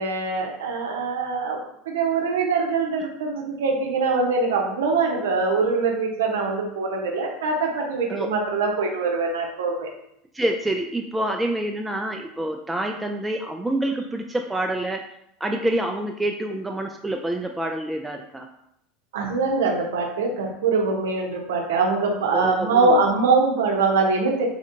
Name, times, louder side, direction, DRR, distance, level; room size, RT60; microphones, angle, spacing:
voice 1, 0.0-9.9 19.1-24.5, right 4 dB, 75° right, 1 dB, 0.7 m, -23 dB
voice 2, 10.3-15.0 15.4-18.5 22.3-23.0, right 1 dB, 10° right, 3 dB, 0.3 m, -27 dB
3.3 x 2.7 x 2.5 m, 0.76 s
hypercardioid pair, 80°, 0 cm